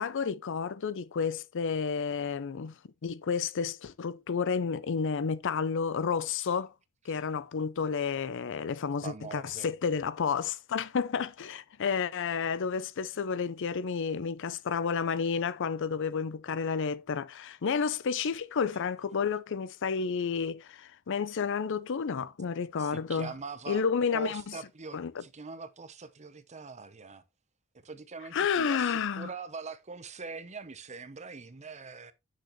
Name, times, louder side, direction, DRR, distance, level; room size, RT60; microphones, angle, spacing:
voice 1, 0.0-6.7 7.0-23.3 23.7-24.6 24.9-25.2 28.3-29.3, left 6 dB, 60° left, 0.5 m, -31 dB
voice 2, 9.0-9.7 22.8-23.8 24.1-27.2 27.8-32.1, right 4 dB, 35° right, 0.8 m, -43 dB
8.0 x 6.4 x 3.1 m
head